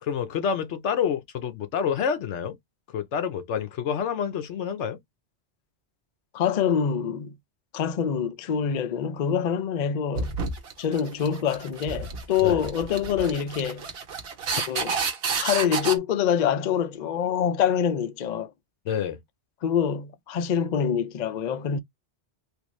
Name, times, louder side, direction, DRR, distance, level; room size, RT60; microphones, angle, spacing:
voice 1, 0.0-2.6 2.9-5.0 12.4-12.6 18.9-19.2, left 7 dB, 80° left, 1.0 m, -28 dB
voice 2, 6.3-7.4 7.7-10.4 10.8-13.8 14.7-15.0 15.4-18.5 19.6-21.8, left 8 dB, 55° left, 0.5 m, -25 dB
sound 1, 10.1-16.0, right 5 dB, 60° right, 0.9 m, -30 dB
3.3 x 2.5 x 3.1 m
omnidirectional pair, 1.2 m